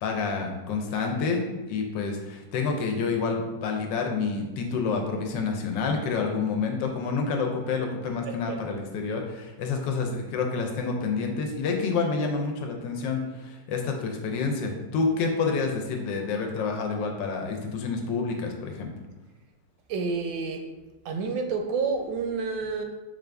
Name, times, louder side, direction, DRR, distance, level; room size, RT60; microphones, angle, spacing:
voice 1, 0.0-18.9, left 4 dB, 80° left, 3 dB, 1.3 m, -28 dB
voice 2, 8.2-8.8 19.9-20.7 21.0-22.8, right 4 dB, 80° right, 5 dB, 1.3 m, -29 dB
5.5 x 2.5 x 3.3 m, 1.1 s
omnidirectional pair, 2.0 m